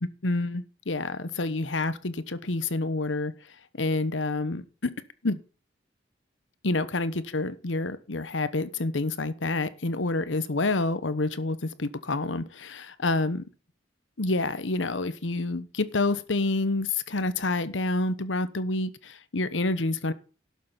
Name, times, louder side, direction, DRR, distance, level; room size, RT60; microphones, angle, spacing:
voice 1, 0.0-3.3 3.8-4.9 5.2-5.4 6.6-13.4 14.2-20.1, left 2 dB, 85° left, 1.1 m, -28 dB
12.0 x 6.8 x 5.7 m
head